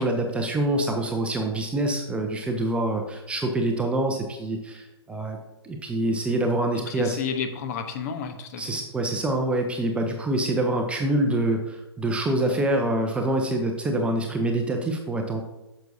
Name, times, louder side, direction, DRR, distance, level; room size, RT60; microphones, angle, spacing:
voice 1, 0.0-5.4 5.6-7.2 8.6-15.4, right 1 dB, 10° right, 3 dB, 0.7 m, -25 dB
voice 2, 6.9-8.8, left 6 dB, 40° left, 7 dB, 0.9 m, -31 dB
9.0 x 6.7 x 2.7 m, 0.99 s
figure-of-eight pair, 120°, 14 cm